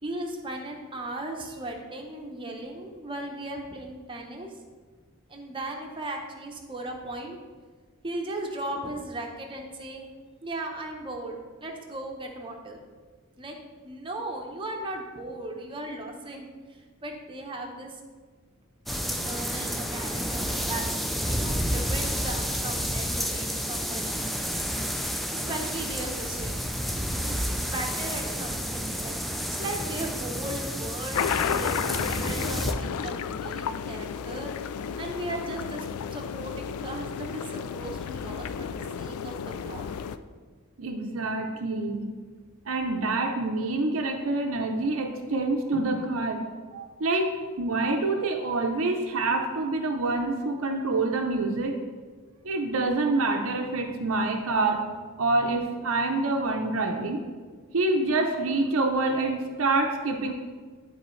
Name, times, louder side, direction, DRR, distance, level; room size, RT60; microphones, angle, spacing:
voice 1, 0.0-4.5 5.3-7.4 8.0-10.1 10.4-12.8 13.4-13.6 13.8-18.0 18.9-20.9 21.3-24.2 25.3-26.6 27.2-29.1 29.5-31.8 32.1-34.5 35.0-39.9, right 2 dB, 25° right, 1 dB, 0.9 m, -37 dB
sound 1, 18.9-32.7, equal, ahead, 0.3 m, -30 dB
sound 2, 31.1-40.2, left 7 dB, 85° left, 0.3 m, -32 dB
voice 2, 40.8-42.0 42.7-46.4 46.7-47.3 47.6-51.7 52.4-54.8 55.2-57.2 57.7-60.3, right 2 dB, 70° right, 2 dB, 0.6 m, -26 dB
11.5 x 3.9 x 3.2 m, 1.5 s
head